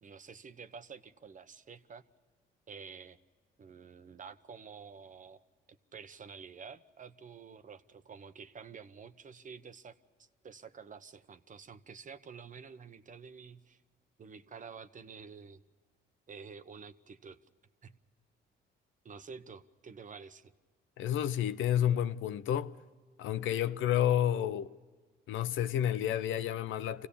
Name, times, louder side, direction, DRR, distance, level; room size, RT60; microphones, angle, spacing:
voice 1, 0.0-2.0 2.7-3.2 3.6-5.4 5.9-13.8 14.2-15.6 16.3-17.4 17.8-18.0 19.0-20.5, right 6 dB, 40° right, 1.0 m, -49 dB
voice 2, 21.0-22.7 23.2-24.7 25.3-27.1, left 10 dB, 80° left, 0.7 m, -30 dB
25.0 x 17.0 x 6.9 m
cardioid pair, 90°, 20 cm